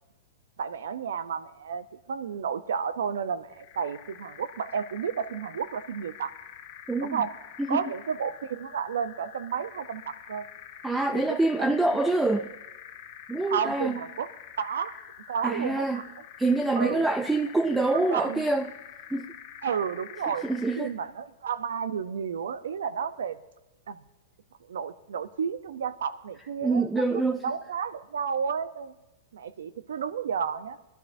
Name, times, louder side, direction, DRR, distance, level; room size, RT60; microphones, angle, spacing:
voice 1, 0.6-6.3 7.0-7.3 7.7-10.5 11.1-11.7 12.3-12.4 13.5-14.3 14.6-15.0 15.3-16.1 16.8-17.1 17.7-18.4 19.6-20.5 20.8-23.4 23.9-24.0 24.6-27.0 27.4-28.9 29.3-30.8, right 7 dB, 85° right, 14 dB, 0.7 m, -32 dB
sound 1, 3.5-20.9, left 9 dB, 45° left, 1.4 m, -47 dB
voice 2, 6.9-7.2 7.6-7.9 10.8-12.5 13.3-14.0 15.4-16.1 16.4-18.7 19.1-19.3 20.4-20.9 26.6-27.4, right 2 dB, 5° right, 9 dB, 0.4 m, -26 dB
20.5 x 12.0 x 2.7 m, 1.0 s
hypercardioid pair, 145°, 0 cm